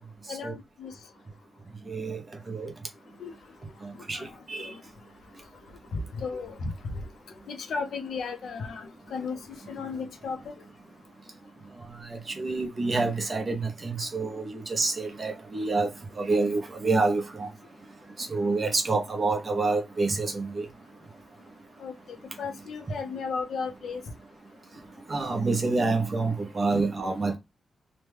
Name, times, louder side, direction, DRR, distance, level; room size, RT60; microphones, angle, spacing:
voice 1, 0.3-0.9 3.2-3.3 4.1-4.3 4.6-4.8 5.9-6.7 7.5-10.5 18.7-18.8 21.8-21.9 22.4-24.0 26.7-26.8, left 5 dB, 70° left, 0.6 m, -34 dB
voice 2, 1.9-2.2 2.5-2.7 4.1-4.2 4.5-4.7 12.4-15.9 16.2-17.5 18.3-20.7 25.1-27.4, right 3 dB, 30° right, 0.8 m, -27 dB
3.0 x 2.2 x 3.4 m
wide cardioid pair, 160°, 0 cm